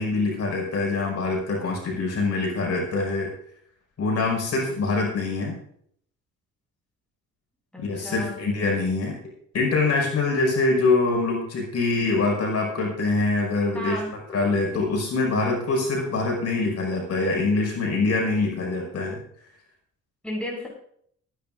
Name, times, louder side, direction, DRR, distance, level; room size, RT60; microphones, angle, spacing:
voice 1, 0.0-3.3 4.0-5.5 7.8-9.2 9.5-14.0 14.3-19.2, left 3 dB, 55° left, -1 dB, 5.7 m, -24 dB
voice 2, 7.7-8.4 13.7-14.1 14.7-14.9 20.2-20.7, equal, 5° left, -3 dB, 7.1 m, -34 dB
24.0 x 10.5 x 2.6 m, 0.65 s
cardioid pair, 90°, 30 cm